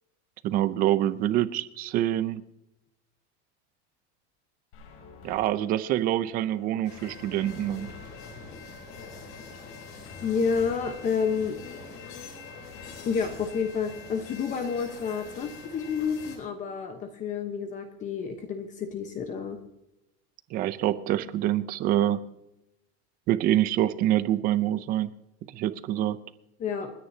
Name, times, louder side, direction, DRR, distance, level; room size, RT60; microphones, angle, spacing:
voice 1, 0.4-2.4 5.2-7.9 20.5-22.2 23.3-25.1 25.5-26.2, right 13 dB, 25° right, 14 dB, 0.5 m, -26 dB
sound 1, 4.7-15.4, left 5 dB, 70° left, 6.1 m, -50 dB
sound 2, 6.8-16.4, left 4 dB, 40° left, 3.8 m, -44 dB
voice 2, 10.2-11.6 13.1-19.6 26.6-26.9, left 6 dB, 20° left, 6 dB, 1.0 m, -29 dB
29.5 x 9.9 x 2.8 m, 0.87 s
supercardioid pair, 175°, 34 cm